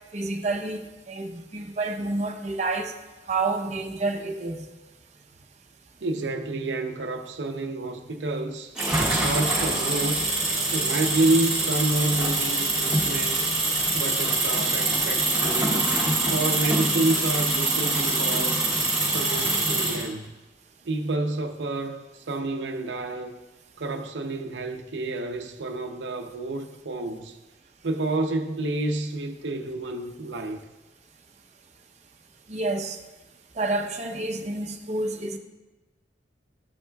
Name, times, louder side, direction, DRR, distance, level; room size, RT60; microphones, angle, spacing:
voice 1, 0.1-3.0 3.3-4.6 32.5-33.0 33.6-35.4, right 2 dB, 40° right, 0.7 m, -29 dB
voice 2, 6.0-8.8 9.2-10.3 10.7-13.5 13.9-15.9 16.2-18.7 19.0-20.3 20.8-23.4 23.8-27.4 27.8-30.6, right 2 dB, 75° right, 0.6 m, -29 dB
sound 1, 8.8-20.1, right 2 dB, 5° right, 2.4 m, -24 dB
13.0 x 5.7 x 2.3 m
head